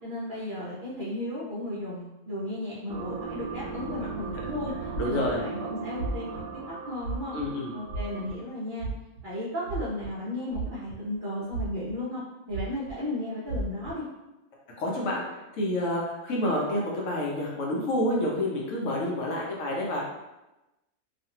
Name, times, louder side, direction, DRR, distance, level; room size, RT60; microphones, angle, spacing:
voice 1, 0.0-4.7 5.0-7.4 7.7-8.9 9.2-12.2 12.5-14.0, left 1 dB, 50° right, -10 dB, 0.6 m, -34 dB
sound 1, 2.9-8.5, right 5 dB, 90° right, 1.1 m, -38 dB
sound 2, 4.9-5.4 6.0-6.4 7.0-7.5 7.9-8.3 8.8-9.2 9.6-10.1 10.5-11.2 11.5-11.9 12.5-12.9 13.5-13.9, right 3 dB, 65° right, 1.0 m, -33 dB
voice 2, 5.0-5.4 7.3-7.7 14.8-20.1, left 1 dB, 70° left, -3 dB, 0.9 m, -28 dB
2.5 x 2.5 x 2.7 m, 0.99 s
omnidirectional pair, 1.5 m